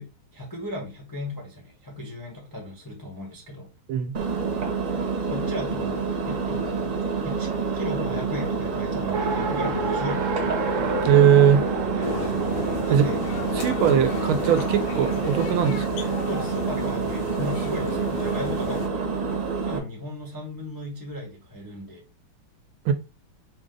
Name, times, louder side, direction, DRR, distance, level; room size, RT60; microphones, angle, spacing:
voice 1, 0.0-3.7 5.3-7.0 7.2-10.6 11.9-12.5 12.8-13.2 16.3-19.0 19.6-22.0, left 1 dB, 20° left, 0.6 m, -35 dB
Engine, 4.1-19.8, right 5 dB, 45° right, 1.5 m, -28 dB
Race car auto racing, 9.1-15.4, right 2 dB, 65° right, 0.7 m, -31 dB
voice 2, 11.0-11.6 12.9-13.0 13.6-16.1 22.8-22.9, right 8 dB, 85° right, 1.5 m, -20 dB
sound 1, 12.0-18.9, left 6 dB, 75° left, 1.4 m, -36 dB
5.1 x 2.5 x 3.8 m
omnidirectional pair, 2.2 m